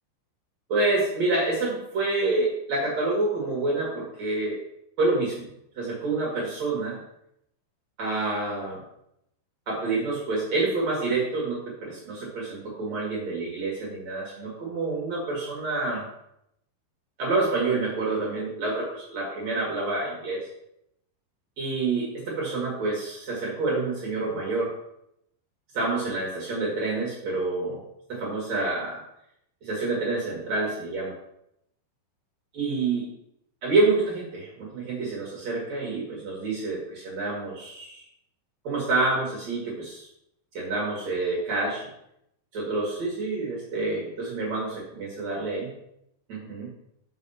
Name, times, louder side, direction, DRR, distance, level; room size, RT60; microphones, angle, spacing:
voice 1, 0.7-4.6 5.0-5.5 5.8-7.0 8.0-8.8 9.7-16.0 17.2-20.5 21.6-24.7 25.7-27.8 28.1-29.0 29.6-31.1 32.5-33.1 33.6-38.0 38.6-40.1 40.5-41.9 42.5-45.7 46.3-46.7, right 3 dB, 55° right, -4 dB, 2.0 m, -28 dB
6.4 x 5.6 x 5.5 m, 0.78 s
omnidirectional pair, 5.4 m